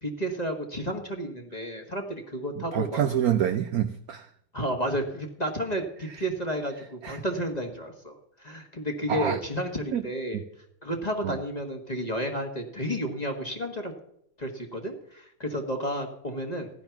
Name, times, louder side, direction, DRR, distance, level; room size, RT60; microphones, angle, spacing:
voice 1, 0.0-3.0 4.5-10.4 10.8-13.9 14.4-16.7, equal, 20° left, 3 dB, 1.3 m, -32 dB
voice 2, 2.7-4.2 7.0-7.1 9.1-9.4 9.9-10.0, right 10 dB, 75° right, 9 dB, 0.8 m, -26 dB
15.5 x 10.5 x 5.9 m, 0.75 s
omnidirectional pair, 2.3 m